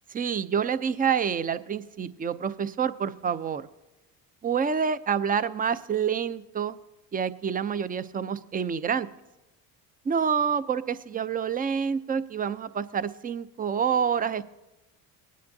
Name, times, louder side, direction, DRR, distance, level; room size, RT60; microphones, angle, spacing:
voice 1, 0.1-3.7 4.4-6.8 7.1-9.1 10.0-14.4, right 7 dB, 20° right, 14 dB, 0.5 m, -27 dB
19.5 x 9.4 x 2.7 m, 1.0 s
hypercardioid pair, 75°, 47 cm